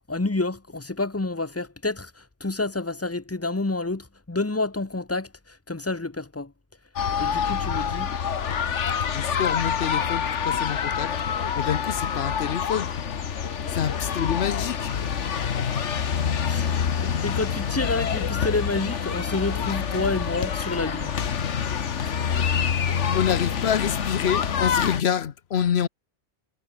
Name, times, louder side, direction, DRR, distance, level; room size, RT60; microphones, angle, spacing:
voice 1, 0.1-6.5 7.2-8.1 13.6-13.7 16.4-21.2, left 2 dB, 15° left, 0.9 m, -29 dB
sound 1, 7.0-25.0, left 7 dB, 90° left, 1.5 m, -26 dB
voice 2, 9.1-11.1 11.5-12.9 13.7-14.9 23.1-25.9, left 8 dB, 65° left, 1.1 m, -27 dB
sound 2, 13.6-21.2, right 2 dB, 80° right, 6.3 m, -49 dB
omnidirectional pair, 1.2 m